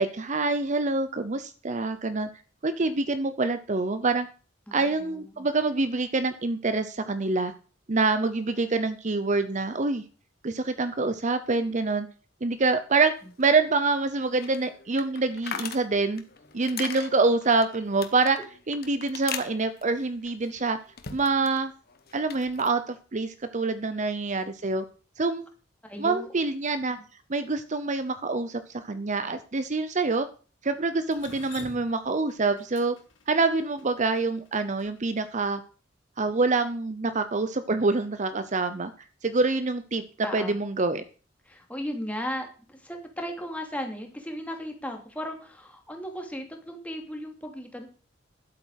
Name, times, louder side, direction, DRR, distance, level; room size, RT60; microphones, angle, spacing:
voice 1, 0.0-2.3 2.6-4.3 4.7-7.5 7.9-10.0 10.4-12.1 12.4-16.2 16.5-18.4 18.7-20.8 21.1-21.7 22.1-24.8 25.2-25.5 26.0-27.0 27.3-30.3 30.6-33.0 33.3-35.6 36.2-38.9 39.2-41.0, right 3 dB, 40° right, 11 dB, 0.8 m, -26 dB
voice 2, 4.7-5.5 25.8-26.3 40.2-40.6 41.5-47.9, equal, 10° left, 3 dB, 2.7 m, -36 dB
sound 1, 13.1-21.6 21.9-22.7, left 7 dB, 55° left, 1.5 m, -41 dB
Drip, 31.1-35.2, left 4 dB, 80° left, 2.8 m, -47 dB
11.5 x 8.4 x 6.5 m, 0.39 s
head